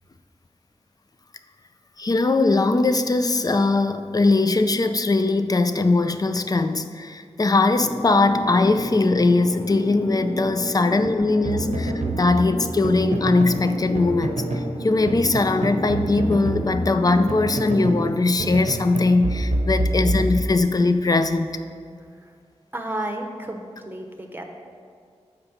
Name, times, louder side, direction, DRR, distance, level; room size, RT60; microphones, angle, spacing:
voice 1, 2.0-14.4 14.8-21.5, left 3 dB, 35° left, 9 dB, 0.4 m, -20 dB
sound 1, 7.7-18.1, equal, 60° left, 1.3 m, -33 dB
sound 2, 11.4-13.6 13.9-14.7 15.1-18.1 18.4-20.8, right 1 dB, 90° right, 0.8 m, -27 dB
voice 2, 22.7-24.4, right 1 dB, 15° right, 3 dB, 0.9 m, -33 dB
7.0 x 5.1 x 5.6 m, 2.2 s
wide cardioid pair, 70°, 12 cm